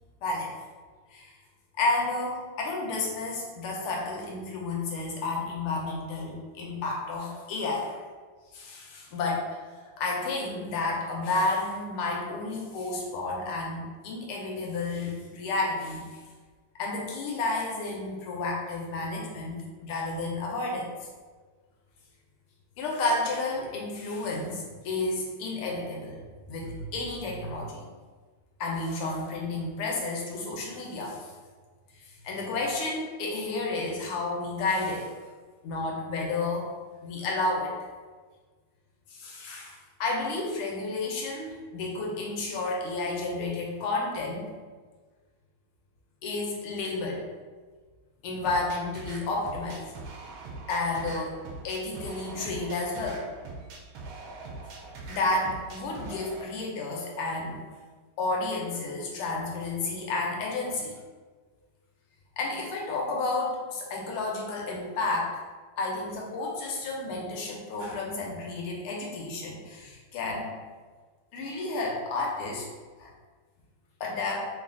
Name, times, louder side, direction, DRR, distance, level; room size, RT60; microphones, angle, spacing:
voice 1, 0.2-0.5 1.1-1.3 1.8-8.0 8.5-9.6 10.0-16.1 16.8-20.9 22.8-26.2 26.5-27.8 28.6-31.3 31.9-35.1 35.6-36.7 37.0-37.7 39.1-44.5 46.2-47.3 48.2-49.9 50.7-51.4 51.6-53.3 55.1-57.6 58.2-60.9 62.4-65.3 65.8-70.5 71.3-72.6 73.0-73.1 74.0-74.5, left 2 dB, 85° left, -1 dB, 1.6 m, -31 dB
sound 1, 48.4-56.4, right 3 dB, 80° right, 1.4 m, -43 dB
3.7 x 2.3 x 3.7 m, 1.4 s
omnidirectional pair, 2.3 m